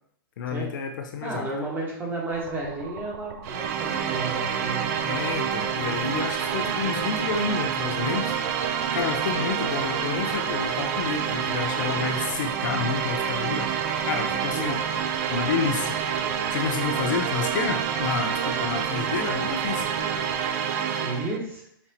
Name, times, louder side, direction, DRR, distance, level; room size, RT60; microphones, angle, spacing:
voice 1, 0.4-1.5 5.0-8.4 8.9-13.7 14.0-14.8 15.3-16.0 16.5-19.9, left 6 dB, 55° left, 5 dB, 0.5 m, -29 dB
voice 2, 1.2-5.1 14.5-14.7 21.0-21.6, right 2 dB, 15° right, -3 dB, 1.4 m, -32 dB
sound 1, 2.3-20.5, right 5 dB, 75° right, 0.7 m, -42 dB
sound 2, 3.4-21.4, right 8 dB, 40° right, 0.4 m, -28 dB
5.8 x 2.7 x 3.0 m, 0.72 s
hypercardioid pair, 125°, 12 cm